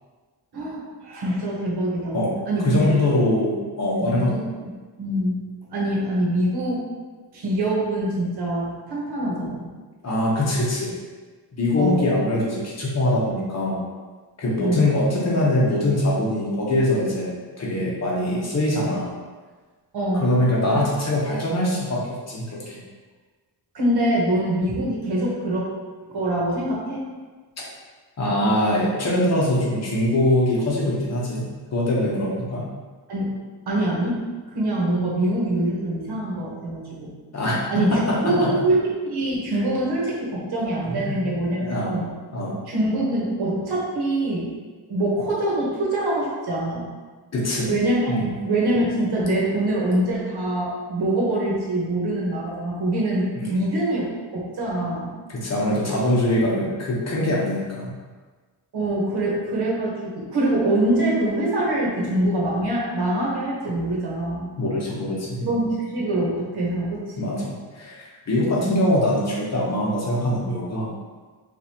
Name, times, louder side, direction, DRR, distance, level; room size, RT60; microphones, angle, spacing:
voice 1, 0.5-2.8 4.0-4.7 5.0-5.5 5.7-6.9 7.3-9.7 11.8-12.2 14.6-15.0 18.2-18.4 19.9-20.3 23.7-25.7 26.1-27.0 33.1-33.3 33.7-37.1 37.7-42.1 42.7-44.5 44.9-46.9 47.7-54.1 54.3-55.2 58.7-64.5 65.4-67.3 68.6-68.9, right 1 dB, 65° right, -4 dB, 1.1 m, -24 dB
voice 2, 2.6-4.3 10.0-10.9 11.5-13.8 14.4-19.1 20.1-22.8 28.2-32.7 37.3-38.5 40.9-42.0 42.3-42.6 47.3-47.8 48.1-48.3 53.3-53.6 55.3-57.9 64.6-65.5 67.2-70.9, left 1 dB, 40° left, -5 dB, 0.9 m, -23 dB
4.7 x 2.6 x 2.8 m, 1.4 s
wide cardioid pair, 145°, 41 cm